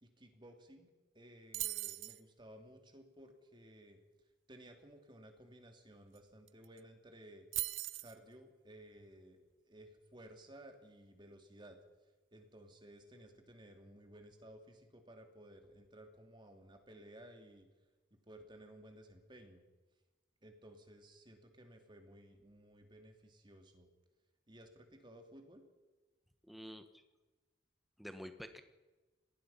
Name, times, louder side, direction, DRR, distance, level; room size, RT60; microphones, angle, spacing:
voice 1, 0.0-4.0 4.5-7.5 8.0-11.8 12.3-17.7 18.3-19.6 20.4-23.9 24.5-25.6, right 1 dB, 25° right, 4 dB, 2.8 m, -57 dB
sound 1, 1.5-2.2 6.2-6.3 6.5-6.8 7.5-8.2, right 18 dB, 90° right, 0.7 m, -39 dB
voice 2, 26.4-27.0 28.0-28.6, equal, ahead, 8 dB, 1.4 m, -49 dB
25.5 x 19.5 x 5.8 m, 1.2 s
head